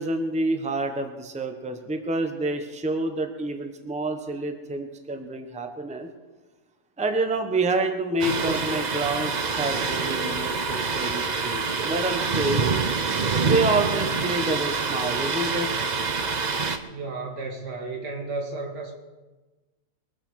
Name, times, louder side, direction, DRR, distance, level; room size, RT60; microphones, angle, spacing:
voice 1, 0.0-6.1 7.0-12.6 13.4-15.8, right 2 dB, 5° right, 6 dB, 0.9 m, -28 dB
Thunder, 8.2-16.8, right 4 dB, 40° right, 0.6 m, -26 dB
voice 2, 16.8-18.9, right 3 dB, 75° right, 1 dB, 2.8 m, -33 dB
22.5 x 7.8 x 6.4 m, 1.2 s
omnidirectional pair, 1.7 m